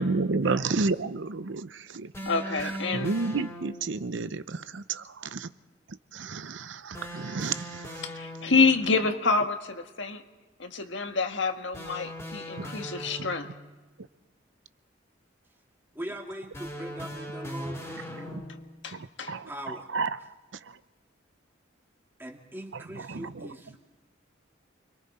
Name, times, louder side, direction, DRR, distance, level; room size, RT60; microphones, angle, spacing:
voice 1, 0.0-2.1 2.9-5.5 6.1-7.9 12.6-12.7 18.3-18.4 18.9-20.2 22.7-23.5, right 4 dB, 75° right, 13 dB, 0.7 m, -31 dB
sound 1, 2.1-4.0 6.9-8.8 11.7-13.7 16.5-18.7, equal, 15° left, 3.4 m, -39 dB
voice 2, 2.2-3.2 8.0-10.2 10.6-13.5 18.8-19.4, left 4 dB, 75° left, 6 dB, 1.5 m, -27 dB
voice 3, 15.9-18.4 19.5-19.9 22.2-23.8, right 1 dB, 10° right, 2 dB, 2.1 m, -40 dB
29.0 x 22.5 x 4.3 m, 1.2 s
head